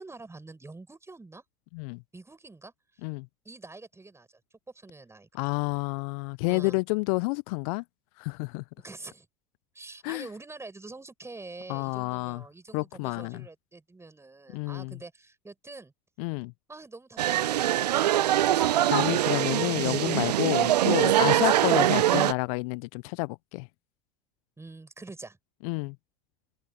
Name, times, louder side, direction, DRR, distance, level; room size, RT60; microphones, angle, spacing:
voice 1, 0.0-1.4 2.1-3.1 3.4-4.3 4.7-5.5 6.5-6.8 8.8-9.3 9.7-15.9 16.7-18.2 24.6-25.4, right 3 dB, 15° right, 7.7 m, -46 dB
voice 2, 5.3-7.8 8.2-8.6 10.0-10.3 11.7-12.4 12.7-13.4 14.5-14.9 16.2-16.5 18.9-23.7 25.6-25.9, left 30 dB, 60° left, 0.5 m, -29 dB
sound 1, 17.2-22.3, right 12 dB, 80° right, 0.5 m, -23 dB
hypercardioid pair, 80°, 21 cm